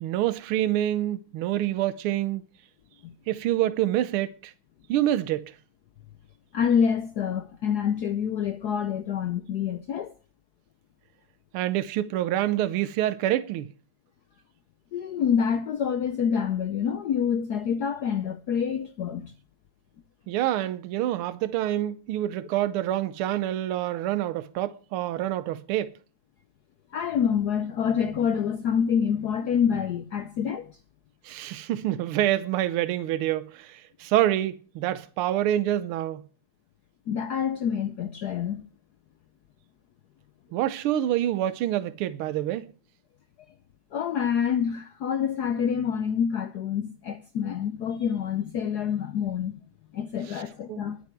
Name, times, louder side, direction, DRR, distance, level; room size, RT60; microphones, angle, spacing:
voice 1, 0.0-2.4 3.3-4.5 4.9-5.5 11.5-13.7 20.3-25.9 31.2-36.3 40.5-42.7 50.7-50.8, right 13 dB, 80° right, 1.6 m, -27 dB
voice 2, 6.5-10.1 14.9-19.3 26.9-30.8 37.1-38.6 43.9-49.6 49.9-51.0, left 7 dB, 65° left, 1.0 m, -27 dB
20.5 x 7.3 x 4.5 m
omnidirectional pair, 2.4 m